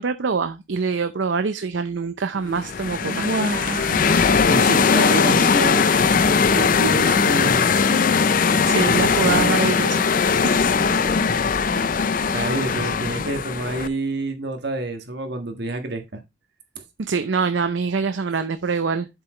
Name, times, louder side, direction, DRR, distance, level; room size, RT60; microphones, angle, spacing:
voice 1, 0.0-3.2 4.6-4.8 8.6-10.5 17.1-19.1, right 5 dB, 80° right, 0.6 m, -25 dB
sound 1, 2.5-13.9, left 5 dB, 45° left, 0.5 m, -19 dB
voice 2, 3.0-7.6 10.3-10.5 12.3-16.2, right 2 dB, 60° right, 1.6 m, -28 dB
7.6 x 7.3 x 3.2 m
head